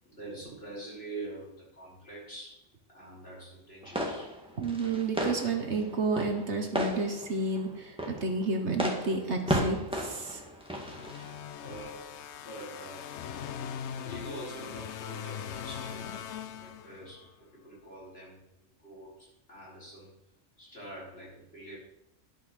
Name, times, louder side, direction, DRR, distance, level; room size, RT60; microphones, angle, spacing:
voice 1, 0.0-4.4 11.1-11.2 11.6-13.1 14.0-16.1 16.5-20.1 20.6-21.8, right 1 dB, 55° left, -6 dB, 5.0 m, -45 dB
sound 1, 3.8-11.5, equal, 5° right, 1.8 m, -35 dB
voice 2, 4.6-10.4, right 3 dB, 65° right, 4 dB, 1.6 m, -31 dB
sound 2, 10.6-17.3, left 8 dB, 70° left, 0.9 m, -41 dB
11.5 x 5.6 x 6.3 m, 0.80 s
omnidirectional pair, 1.3 m